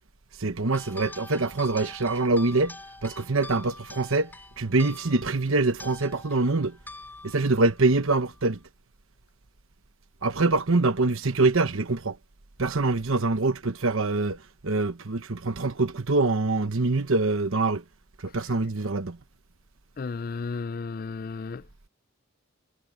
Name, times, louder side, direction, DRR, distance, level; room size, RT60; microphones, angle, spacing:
voice 1, 0.4-2.7 3.0-4.3 4.6-6.7 7.2-8.6 10.2-12.2 12.6-14.4 14.6-17.8 18.2-19.2, right 3 dB, 70° right, 1.1 m, -24 dB
sound 1, 0.7-8.6, left 2 dB, 10° left, 3.4 m, -45 dB
voice 2, 20.0-21.6, left 4 dB, 40° left, 0.4 m, -33 dB
head